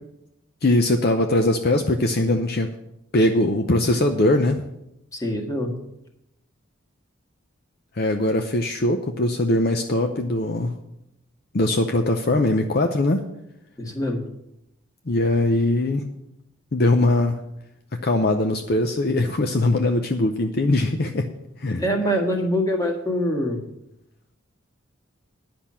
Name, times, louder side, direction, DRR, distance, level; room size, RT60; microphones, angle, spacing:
voice 1, 0.6-2.7 3.1-4.6 7.9-10.7 11.5-13.2 15.1-16.0 16.7-17.4 18.0-21.3 21.6-21.8, left 1 dB, 45° left, 6 dB, 0.6 m, -21 dB
voice 2, 5.1-5.7 13.8-14.2 21.8-23.6, equal, 15° left, 2 dB, 1.6 m, -24 dB
10.0 x 5.9 x 8.6 m, 0.83 s
head